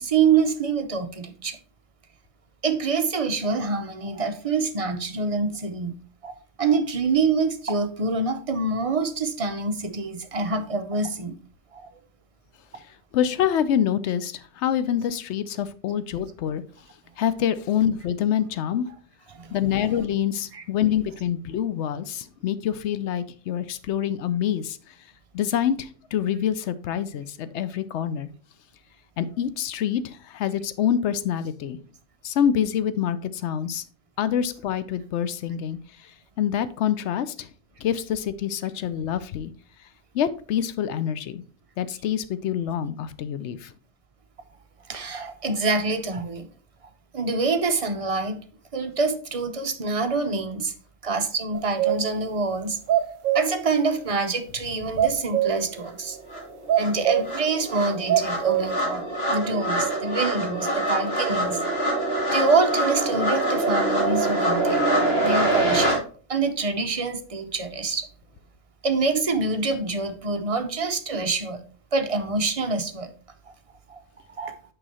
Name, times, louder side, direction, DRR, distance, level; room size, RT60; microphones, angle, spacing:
voice 1, 0.0-1.6 2.6-6.0 6.2-6.3 6.6-11.3 11.7-11.9 19.3-20.0 20.5-20.6 44.9-46.5 47.1-48.4 48.7-50.7 51.0-52.8 53.3-56.2 56.8-61.6 62.3-64.9 65.2-66.0 66.3-68.1 68.8-71.6 71.9-73.1 73.5-73.6 73.9-74.0 74.3-74.5, right 4 dB, 45° right, 0.4 m, -26 dB
voice 2, 13.1-16.6 17.2-18.9 19.5-24.8 25.3-28.3 29.2-31.8 32.2-33.8 34.2-35.8 36.4-37.5 37.8-39.5 40.1-41.4 41.8-43.7, left 9 dB, 65° left, 0.8 m, -26 dB
sound 1, 51.5-52.2 52.6-52.7 52.9-53.7 55.0-55.7 56.7-57.5 58.1-58.7, right 11 dB, 80° right, 1.0 m, -23 dB
sound 2, 55.9-56.0 56.3-66.0, right 1 dB, 50° left, 2.1 m, -24 dB
6.2 x 4.9 x 4.2 m
omnidirectional pair, 1.4 m